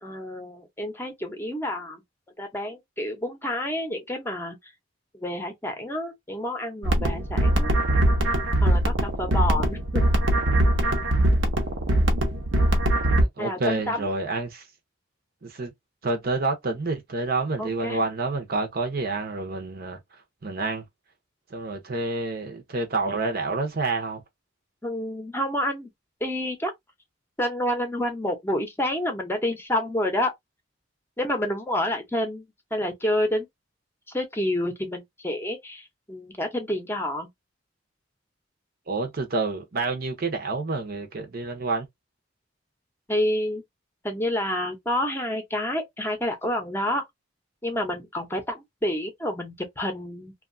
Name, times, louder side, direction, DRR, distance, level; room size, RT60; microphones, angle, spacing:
voice 1, 0.0-2.0 2.4-4.6 5.1-7.7 8.6-10.0 13.4-14.1 17.6-18.0 24.8-25.9 26.2-26.7 27.4-30.3 31.2-32.5 32.7-33.5 34.1-35.8 36.1-37.3 43.1-43.6 44.0-47.0 47.6-50.3, left 1 dB, 10° left, 0.7 m, -28 dB
sound 1, 6.8-13.2, right 1 dB, 80° right, 0.9 m, -22 dB
voice 2, 13.2-14.6 15.4-15.7 16.0-20.0 20.4-20.8 21.5-24.2 38.9-41.9, right 3 dB, 55° right, 0.8 m, -28 dB
2.7 x 2.3 x 2.6 m
head